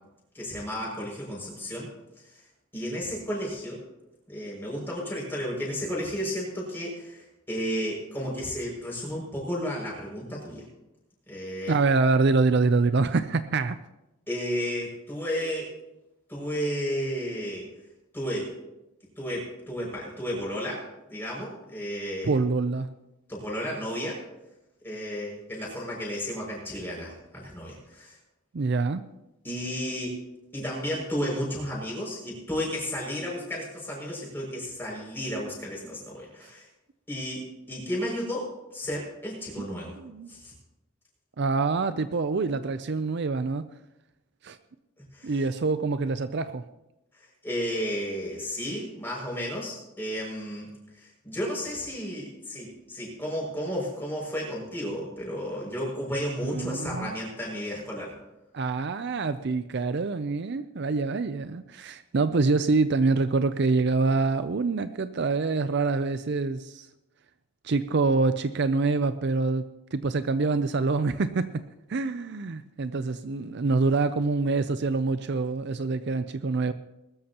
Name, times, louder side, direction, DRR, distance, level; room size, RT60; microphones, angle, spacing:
voice 1, 0.3-1.9 2.3-2.4 2.7-3.8 4.3-10.6 11.3-11.8 14.3-15.7 16.3-17.7 18.1-18.5 19.2-22.4 23.3-24.2 24.8-28.2 29.4-30.2 30.5-36.7 37.1-39.9 40.3-40.5 45.1-45.4 47.1-50.7 50.9-58.1, equal, 10° left, -4 dB, 6.2 m, -33 dB
voice 2, 11.7-13.8 22.2-22.9 28.5-29.0 40.0-40.3 41.4-43.7 44.4-44.6 45.2-46.6 56.5-57.1 58.5-66.9 67.6-69.6 69.9-71.6 71.9-76.7, right 3 dB, 55° right, 12 dB, 0.5 m, -25 dB
21.0 x 13.0 x 2.9 m, 0.94 s
head